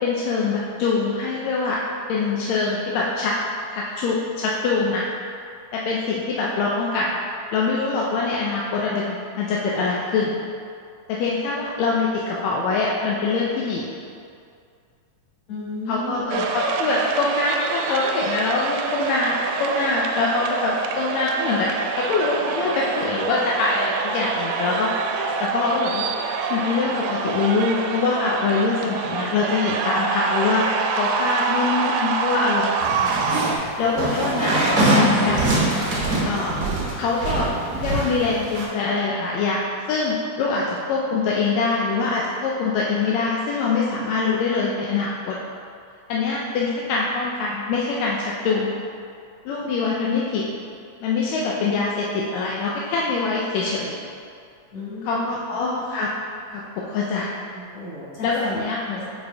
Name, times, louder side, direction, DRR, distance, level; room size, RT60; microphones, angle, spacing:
voice 1, 0.0-1.8 2.1-3.4 3.7-5.1 5.7-7.2 7.5-10.3 11.1-13.9 15.9-21.7 22.0-24.9 25.4-26.1 26.5-30.7 30.9-33.2 33.8-34.5 34.9-35.4 36.3-36.7 37.0-37.5 37.8-39.6 39.9-45.4 46.1-48.7 49.5-50.4 51.0-54.0 55.0-56.1 56.5-57.3 58.2-59.1, left 4 dB, 80° left, -4 dB, 1.6 m, -24 dB
voice 2, 15.5-16.4 54.7-55.4 57.5-58.6 59.0-59.1, left 2 dB, 50° left, -8 dB, 2.4 m, -34 dB
sound 1, 16.3-33.6, right 5 dB, 85° right, 2.0 m, -26 dB
sound 2, 32.8-38.7, right 1 dB, 65° right, 0.9 m, -23 dB
7.8 x 4.3 x 3.3 m, 2.3 s
omnidirectional pair, 3.6 m